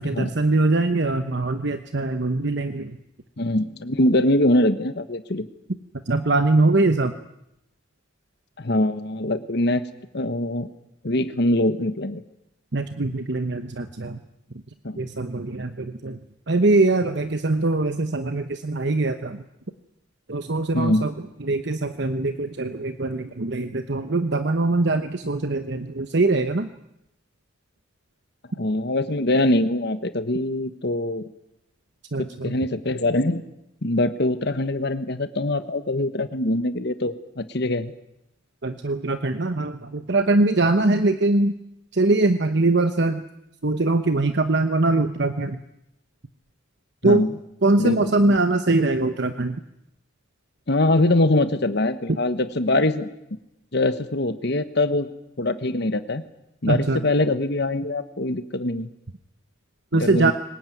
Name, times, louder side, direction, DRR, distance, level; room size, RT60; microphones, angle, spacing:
voice 1, 0.0-3.0 6.1-7.1 12.7-14.2 15.0-16.2 16.5-19.4 20.3-21.1 21.4-26.7 32.1-32.5 38.6-41.6 41.9-43.2 43.6-45.6 47.0-47.2 47.6-49.6 56.7-57.1 59.9-60.3, right 2 dB, 55° right, 9 dB, 1.0 m, -22 dB
voice 2, 3.4-5.5 8.6-9.8 10.1-10.7 11.0-12.2 14.8-15.0 20.7-21.1 28.6-31.2 32.2-33.4 33.8-37.9 47.0-47.3 47.8-48.2 50.7-53.1 53.7-55.1 55.4-56.2 56.6-58.9 59.9-60.3, left 1 dB, 55° left, 11 dB, 1.2 m, -23 dB
23.0 x 20.0 x 9.3 m, 0.84 s
head